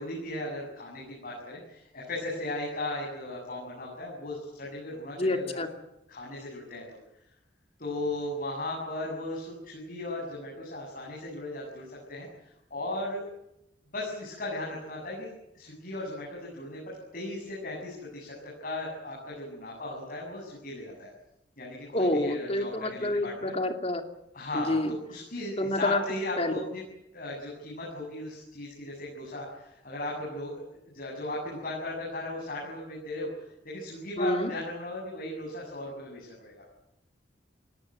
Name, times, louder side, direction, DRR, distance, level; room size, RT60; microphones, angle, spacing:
voice 1, 0.0-5.6 6.1-7.0 7.8-12.3 12.7-13.2 13.9-15.3 15.5-21.1 21.6-23.5 24.3-26.8 27.1-33.3 33.6-36.6, left 1 dB, 50° left, -2 dB, 7.8 m, -37 dB
voice 2, 5.2-5.7 21.9-24.0 24.5-24.9 25.6-26.0 26.4-26.5 34.2-34.5, left 1 dB, 35° left, 6 dB, 2.8 m, -28 dB
28.5 x 17.5 x 9.1 m, 0.84 s
head